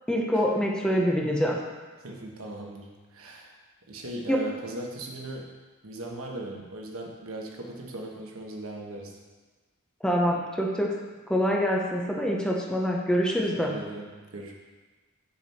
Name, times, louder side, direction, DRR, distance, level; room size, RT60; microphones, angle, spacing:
voice 1, 0.1-1.6 4.3-4.4 10.0-10.9 11.3-13.7, equal, 5° left, -2 dB, 0.8 m, -25 dB
voice 2, 2.0-3.6 3.9-5.5 5.8-9.2 13.5-14.5, right 1 dB, 70° right, 0 dB, 1.2 m, -39 dB
7.1 x 7.0 x 4.3 m, 1.3 s
head